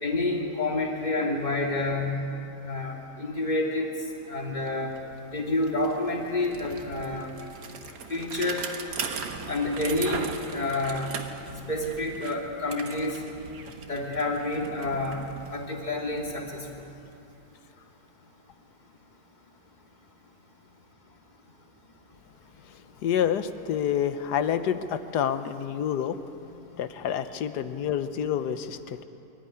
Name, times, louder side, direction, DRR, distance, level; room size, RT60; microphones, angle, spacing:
voice 1, 0.0-2.2 2.6-3.9 4.3-5.0 5.3-7.3 8.1-8.7 9.5-11.1 11.7-13.2 13.9-15.2 15.5-16.7, left 2 dB, 25° left, -1 dB, 2.6 m, -28 dB
Bicycle, 4.2-4.3 4.5-17.4, right 5 dB, 80° right, 1.8 m, -40 dB
voice 2, 22.7-26.2 26.5-29.0, left 9 dB, 80° left, 11 dB, 1.4 m, -28 dB
23.5 x 13.5 x 9.8 m, 2.8 s
omnidirectional pair, 1.7 m